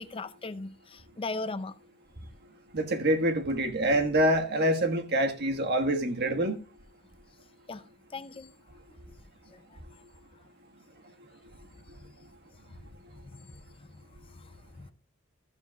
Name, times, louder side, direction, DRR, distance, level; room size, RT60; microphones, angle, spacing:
voice 1, 0.0-1.8 7.7-7.8 8.1-8.5 9.5-9.8 13.2-13.6 14.3-14.9, left 3 dB, 25° left, 0.5 m, -39 dB
voice 2, 2.7-6.6, right 1 dB, 50° right, 1.5 m, -26 dB
13.5 x 12.5 x 2.3 m
head